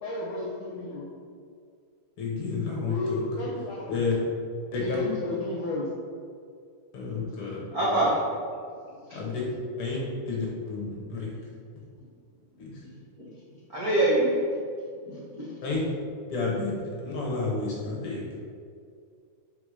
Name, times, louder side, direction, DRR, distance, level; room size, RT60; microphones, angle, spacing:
voice 1, 0.0-1.1 2.9-4.0 4.8-5.9, left 2 dB, 90° left, -6 dB, 1.1 m, -32 dB
voice 2, 2.2-3.2 3.9-4.1 4.7-5.0 6.9-8.0 9.1-9.4 9.8-10.0 10.3-11.3 12.6-12.8 15.6-15.9 16.3-18.2, left 4 dB, 60° left, -3 dB, 1.5 m, -31 dB
voice 3, 7.7-8.2 9.1-9.2 13.2-13.3 13.7-14.5 15.0-15.5, right 1 dB, 80° right, -8 dB, 0.8 m, -25 dB
5.1 x 4.7 x 4.9 m, 2.3 s
omnidirectional pair, 3.6 m